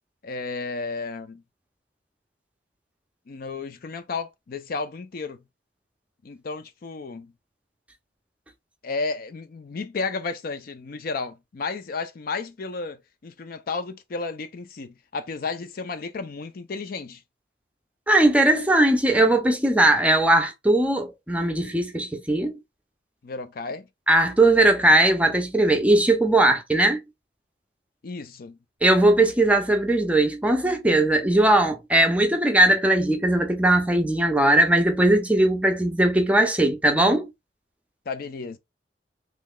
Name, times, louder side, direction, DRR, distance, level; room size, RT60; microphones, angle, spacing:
voice 1, 0.2-1.4 3.3-5.4 6.2-7.3 8.8-17.2 23.2-23.9 28.0-28.6 38.1-38.6, left 4 dB, 55° left, 0.4 m, -33 dB
voice 2, 18.1-22.5 24.1-27.0 28.8-37.3, right 1 dB, 5° right, 0.5 m, -19 dB
3.1 x 2.3 x 3.7 m
head